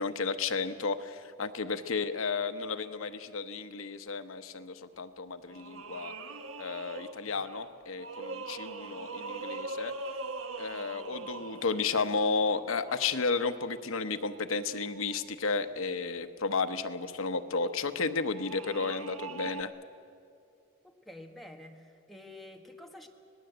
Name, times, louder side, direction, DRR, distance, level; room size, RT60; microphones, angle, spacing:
voice 1, 0.0-6.1 6.6-9.9 10.6-19.7, left 4 dB, 90° left, 9 dB, 1.0 m, -33 dB
sound 1, 5.0-5.1 5.5-13.4 14.5-15.3 16.0-16.1 17.5-19.6, right 3 dB, 80° right, 1.2 m, -42 dB
voice 2, 20.8-23.1, left 1 dB, ahead, 2 dB, 1.5 m, -49 dB
25.5 x 19.0 x 8.0 m, 2.5 s
head